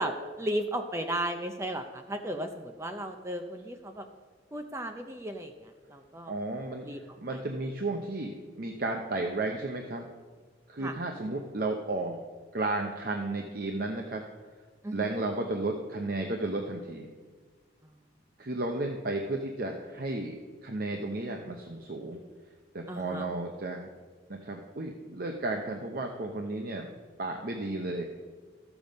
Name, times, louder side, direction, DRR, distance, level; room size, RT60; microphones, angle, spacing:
voice 1, 0.0-4.1 4.5-6.3 6.8-7.0 7.3-7.4 10.8-11.0 14.8-15.2 22.9-23.3, right 1 dB, 15° right, 5 dB, 0.5 m, -35 dB
voice 2, 6.3-10.1 10.7-12.2 12.5-14.2 14.9-17.1 18.4-20.4 20.6-22.2 22.7-23.9 24.3-26.9 27.2-28.0, right 2 dB, 50° right, 2 dB, 0.8 m, -33 dB
14.0 x 7.1 x 5.2 m, 1.5 s
head